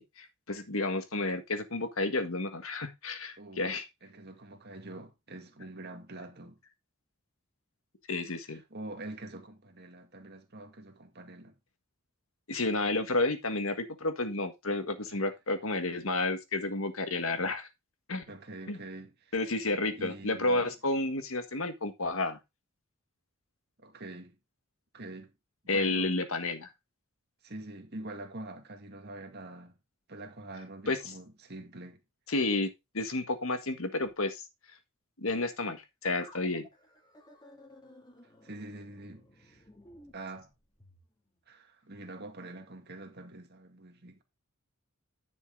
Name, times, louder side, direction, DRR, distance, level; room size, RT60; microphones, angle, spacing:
voice 1, 0.0-3.8 8.1-8.6 12.5-17.7 18.1-18.2 18.7-18.8 19.3-22.4 25.7-26.7 30.9-31.0 32.3-32.7 32.9-34.4 35.2-36.7, left 2 dB, 70° left, 1.7 m, -31 dB
voice 2, 4.0-6.6 8.5-11.5 15.1-15.2 18.3-19.3 19.9-20.7 23.8-24.4 24.9-25.3 25.7-26.1 27.4-29.8 30.1-32.0 38.4-39.6 40.1-40.5 41.5-44.2, right 2 dB, 50° right, 2.0 m, -45 dB
sound 1, 36.1-41.0, left 1 dB, 20° left, 2.5 m, -55 dB
10.5 x 6.2 x 3.8 m
head